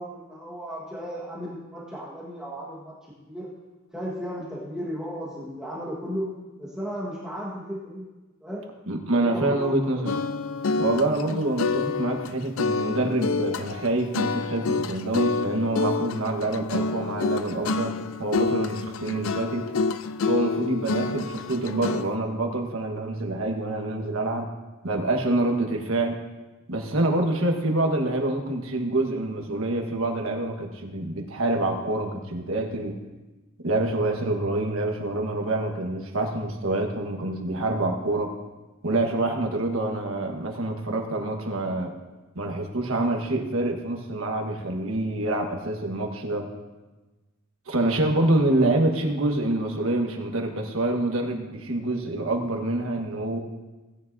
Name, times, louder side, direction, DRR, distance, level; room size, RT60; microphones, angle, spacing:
voice 1, 0.0-2.9 3.3-3.5 3.9-6.3 6.6-8.1 8.4-8.7 9.2-9.7, equal, 5° right, -6 dB, 1.4 m, -35 dB
voice 2, 8.9-10.2 10.8-19.7 20.2-24.5 24.8-26.2 26.7-32.9 33.6-38.3 38.8-41.9 42.3-46.5 47.7-53.4, right 2 dB, 85° right, 2 dB, 1.4 m, -26 dB
sound 1, 10.1-22.2, left 4 dB, 75° left, 0.4 m, -28 dB
17.0 x 9.8 x 2.7 m, 1.2 s
head